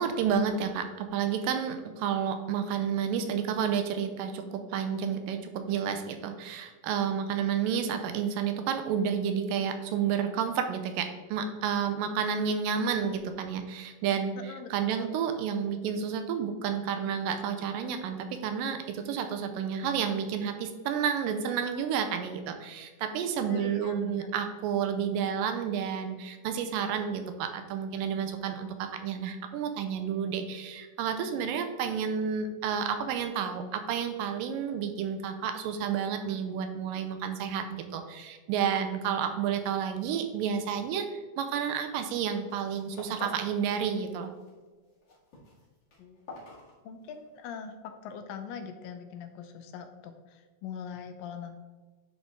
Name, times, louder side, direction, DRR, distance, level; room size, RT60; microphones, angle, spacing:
voice 1, 0.0-44.3, right 7 dB, 85° right, 7 dB, 2.2 m, -30 dB
voice 2, 14.4-15.2 23.5-24.3 46.0-46.2 46.9-51.6, left 7 dB, 80° left, 7 dB, 2.3 m, -42 dB
sound 1, 41.8-42.1 42.4-43.6 43.9-44.5 44.8-47.3, left 2 dB, 40° left, 1.9 m, -47 dB
10.0 x 3.8 x 3.6 m, 1.3 s
omnidirectional pair, 4.0 m